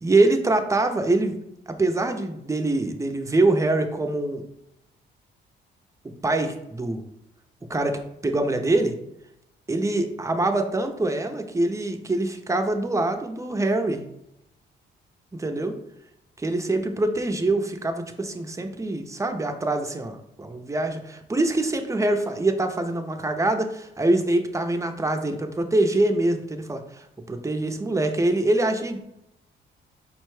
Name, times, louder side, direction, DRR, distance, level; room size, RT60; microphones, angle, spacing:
voice 1, 0.0-1.4 1.7-4.4 6.2-7.0 7.7-8.9 9.7-14.0 15.3-15.7 16.4-29.0, right 2 dB, 15° right, 5 dB, 0.6 m, -24 dB
5.1 x 2.2 x 4.7 m, 0.81 s
cardioid pair, 90°, 20 cm